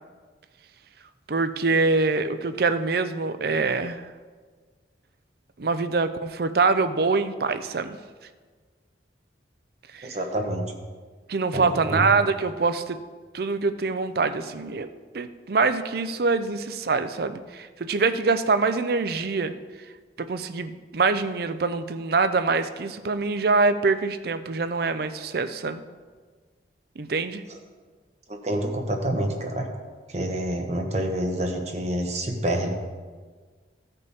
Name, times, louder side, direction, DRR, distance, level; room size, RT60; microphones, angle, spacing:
voice 1, 1.3-4.0 5.6-8.0 9.9-10.2 11.3-13.0 13.3-14.9 15.1-19.6 20.2-25.8 27.0-27.4, right 4 dB, 55° right, 11 dB, 0.5 m, -24 dB
voice 2, 10.0-10.7 11.5-12.0 28.3-29.7 30.1-32.7, right 1 dB, 35° right, 3 dB, 1.1 m, -27 dB
15.5 x 5.3 x 4.2 m, 1.5 s
head